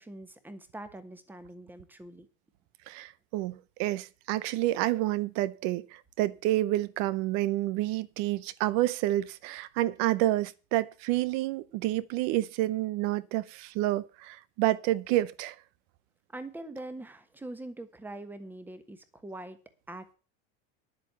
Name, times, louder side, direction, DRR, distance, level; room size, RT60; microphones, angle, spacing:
voice 1, 0.0-2.3 16.3-19.6 19.9-20.2, right 2 dB, 5° right, 1.3 m, -43 dB
voice 2, 2.9-15.5, right 15 dB, 60° right, 0.9 m, -29 dB
10.5 x 7.8 x 7.0 m
supercardioid pair, 150°, 29 cm